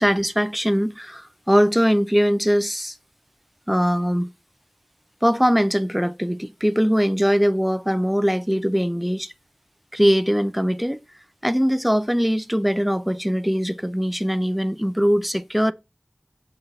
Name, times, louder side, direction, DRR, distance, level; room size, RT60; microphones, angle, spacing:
voice 1, 0.0-3.0 3.7-4.3 5.2-9.3 9.9-11.0 11.4-15.7, equal, 5° right, 0.7 m, -21 dB
7.2 x 5.7 x 5.5 m
wide cardioid pair, 45°, 3 cm